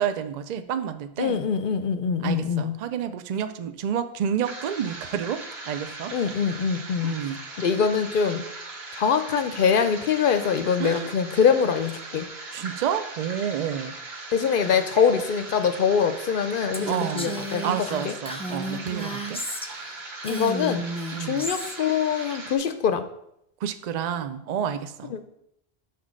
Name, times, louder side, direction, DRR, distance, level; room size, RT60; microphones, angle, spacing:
voice 1, 0.0-1.4 2.2-6.1 7.0-7.4 10.8-11.1 12.5-14.0 16.9-17.3 17.6-19.4 21.1-21.5 23.6-25.2, right 8 dB, 55° right, 10 dB, 0.5 m, -29 dB
voice 2, 1.2-2.7 6.1-7.2 7.6-8.4 9.0-12.3 14.3-18.1 20.2-20.8 21.2-23.0 25.1-25.2, left 6 dB, 60° left, 9 dB, 0.7 m, -24 dB
sound 1, 4.4-22.6, right 3 dB, 75° right, 1.4 m, -39 dB
Female speech woman speaking, 16.7-19.9 20.2-21.8, right 1 dB, 10° left, 0.3 m, -33 dB
6.0 x 4.1 x 6.3 m, 0.77 s
omnidirectional pair, 1.1 m